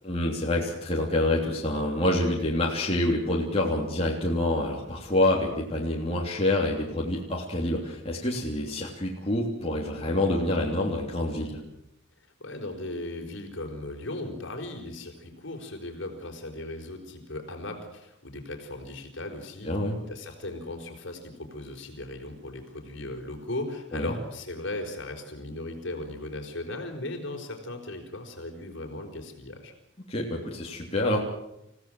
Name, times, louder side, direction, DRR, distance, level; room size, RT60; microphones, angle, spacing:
voice 1, 0.0-11.6 19.6-19.9 23.9-24.1 30.1-31.2, left 1 dB, 25° left, -3 dB, 3.2 m, -27 dB
voice 2, 12.4-19.8 20.1-29.7, left 2 dB, 55° left, 4 dB, 4.9 m, -37 dB
29.0 x 17.0 x 7.8 m, 0.83 s
head